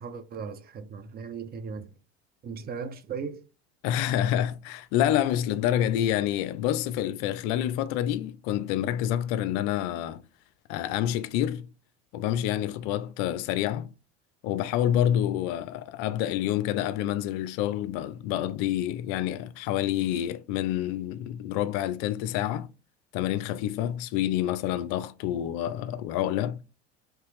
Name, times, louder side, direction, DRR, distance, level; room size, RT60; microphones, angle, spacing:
voice 1, 0.0-1.9 2.4-3.4, right 5 dB, 30° right, 0.5 m, -37 dB
voice 2, 3.8-10.2 10.7-11.7 12.1-13.9 14.4-22.7 23.1-26.6, left 11 dB, 55° left, 0.4 m, -28 dB
3.1 x 2.9 x 3.3 m
hypercardioid pair, 80°, 33 cm